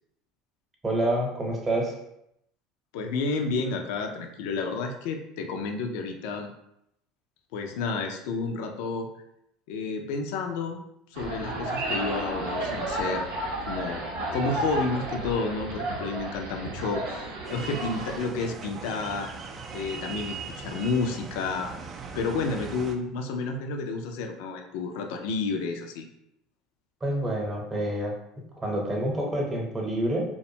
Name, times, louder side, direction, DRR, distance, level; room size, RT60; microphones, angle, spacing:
voice 1, 0.8-1.9 27.0-28.1 28.6-30.2, right 1 dB, 25° right, -1 dB, 0.8 m, -27 dB
voice 2, 2.9-6.5 7.5-9.1 9.7-10.8 11.1-13.3 13.7-14.1 14.3-19.3 19.7-21.7 22.1-26.1, left 4 dB, 75° left, 4 dB, 0.4 m, -30 dB
sound 1, 11.1-18.2, right 2 dB, 85° right, 0.6 m, -32 dB
sound 2, 17.4-23.0, right 5 dB, 45° right, 0.3 m, -39 dB
2.5 x 2.2 x 2.8 m, 0.79 s
hypercardioid pair, 80°, 0 cm